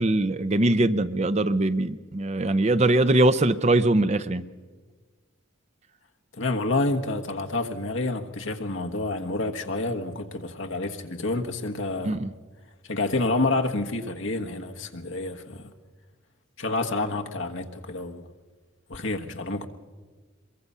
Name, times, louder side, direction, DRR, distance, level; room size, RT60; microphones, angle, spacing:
voice 1, 0.0-4.4 12.0-12.3, right 2 dB, 30° right, 12 dB, 0.6 m, -22 dB
voice 2, 6.3-12.2 12.9-15.7 16.6-18.2 18.9-19.7, left 2 dB, 60° left, 5 dB, 1.4 m, -28 dB
23.5 x 22.5 x 5.6 m, 1.4 s
head